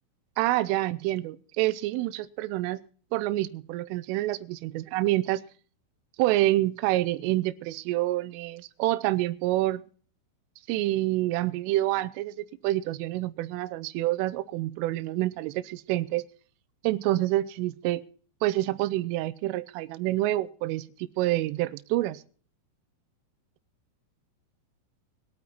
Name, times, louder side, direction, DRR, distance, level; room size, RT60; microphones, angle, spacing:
voice 1, 0.4-2.8 3.1-5.4 6.2-9.9 10.7-16.2 16.8-18.0 18.4-22.2, right 16 dB, 85° right, 3.3 m, -27 dB
22.5 x 8.6 x 4.1 m
omnidirectional pair, 5.7 m